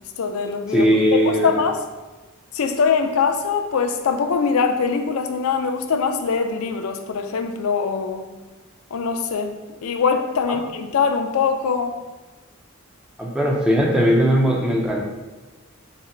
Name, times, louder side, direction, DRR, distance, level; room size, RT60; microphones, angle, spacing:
voice 1, 0.2-1.8 2.5-8.3 8.9-12.0, left 5 dB, 75° left, 5 dB, 0.4 m, -22 dB
voice 2, 0.7-1.5 10.5-10.6 13.2-15.0, equal, 5° right, -2 dB, 0.4 m, -18 dB
4.1 x 2.2 x 3.7 m, 1.2 s
head